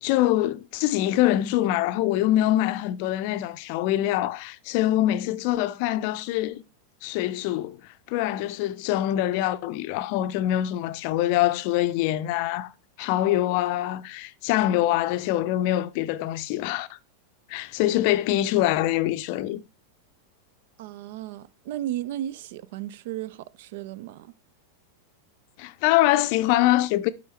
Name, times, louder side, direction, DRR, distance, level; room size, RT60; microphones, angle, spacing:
voice 1, 0.0-6.6 7.0-7.8 8.1-12.7 13.0-16.9 17.5-19.6 25.6-27.1, left 14 dB, 45° left, 0.5 m, -24 dB
voice 2, 20.8-24.3, right 13 dB, 50° right, 0.4 m, -34 dB
7.9 x 5.0 x 4.3 m
figure-of-eight pair, 90°, 0 cm